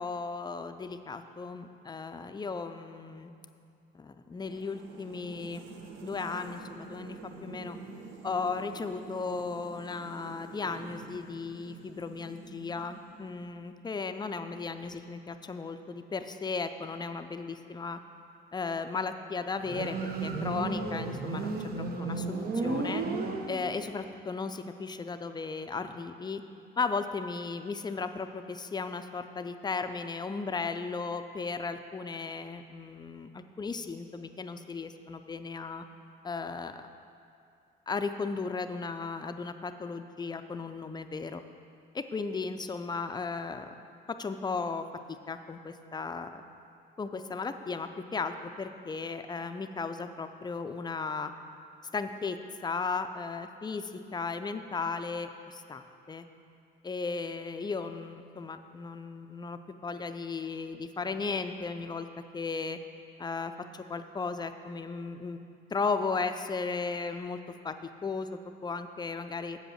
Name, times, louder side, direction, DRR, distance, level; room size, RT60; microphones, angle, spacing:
voice 1, 0.0-3.3 3.9-5.6 6.0-7.8 8.2-18.0 18.5-23.0 23.5-26.4 26.8-35.8 36.2-36.9 37.9-41.4 41.9-43.7 44.1-46.4 47.0-51.3 51.9-52.4 52.6-56.3 56.8-62.1 62.3-62.8 63.2-65.4 65.7-67.4 67.6-69.6, left 4 dB, 20° left, 8 dB, 0.4 m, -35 dB
sound 1, 4.4-13.8, right 3 dB, 75° right, 0.9 m, -47 dB
Motorcycle, 19.6-24.0, right 3 dB, 50° right, 0.7 m, -33 dB
7.7 x 5.1 x 6.4 m, 2.5 s
cardioid pair, 90°, 20 cm